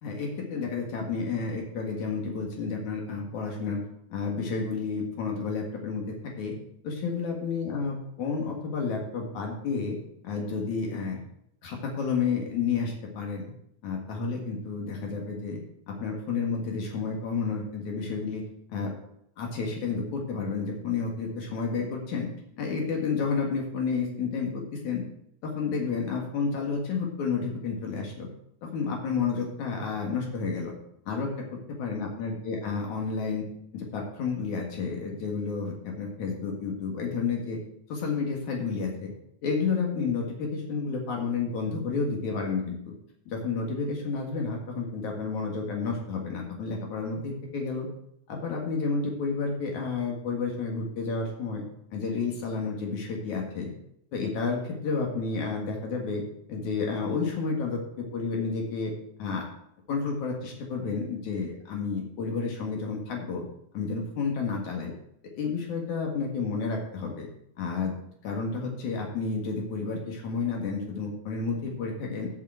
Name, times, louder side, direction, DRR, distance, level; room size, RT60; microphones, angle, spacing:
voice 1, 0.0-3.8 4.1-6.5 6.8-10.0 10.2-11.2 11.6-13.5 13.8-15.6 15.9-18.4 18.7-19.0 19.4-22.3 22.6-25.0 25.4-28.3 28.6-30.7 31.1-31.3 31.7-33.4 33.7-37.6 37.9-39.1 39.4-42.9 43.3-47.9 48.3-51.6 51.9-53.7 54.1-56.2 56.5-58.9 59.2-59.4 59.9-63.4 63.7-64.9 65.4-67.3 67.6-68.0 68.2-72.3, left 4 dB, 80° left, 0 dB, 3.2 m, -31 dB
8.4 x 6.8 x 7.7 m, 0.74 s
omnidirectional pair, 3.3 m